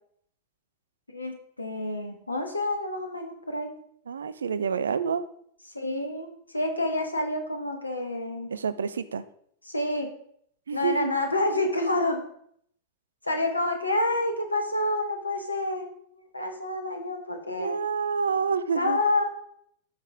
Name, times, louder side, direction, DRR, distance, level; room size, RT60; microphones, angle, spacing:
voice 1, 1.1-3.7 5.7-8.5 9.6-10.1 10.7-12.2 13.2-15.9 16.3-17.7 18.7-19.3, left 2 dB, 80° left, 5 dB, 1.3 m, -28 dB
voice 2, 4.1-5.2 8.5-9.2 10.7-11.1 17.6-19.0, right 6 dB, 70° right, 15 dB, 0.5 m, -28 dB
13.5 x 5.4 x 3.6 m, 0.66 s
figure-of-eight pair, 90°, 0 cm